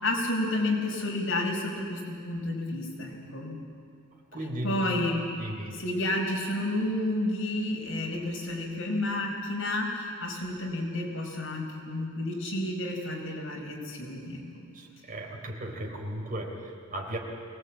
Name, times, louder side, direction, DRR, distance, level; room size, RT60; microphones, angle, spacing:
voice 1, 0.0-3.6 4.6-5.2 5.7-14.7, left 1 dB, 70° left, -1 dB, 5.3 m, -31 dB
voice 2, 4.3-5.0 5.4-5.8 14.7-17.2, right 1 dB, 40° right, 1 dB, 3.8 m, -36 dB
23.0 x 19.0 x 8.6 m, 2.2 s
head